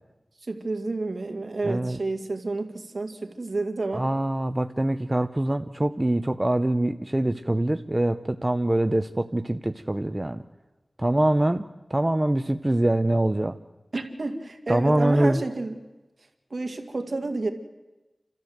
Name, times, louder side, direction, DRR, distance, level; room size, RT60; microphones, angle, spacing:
voice 1, 0.5-4.1 13.9-15.7 16.5-17.5, right 3 dB, 60° right, 5 dB, 2.2 m, -30 dB
voice 2, 1.6-2.0 3.9-10.4 11.0-13.6 14.7-15.4, right 1 dB, 25° right, 8 dB, 0.7 m, -24 dB
29.5 x 13.5 x 8.0 m, 1.1 s
wide cardioid pair, 65°, 0 cm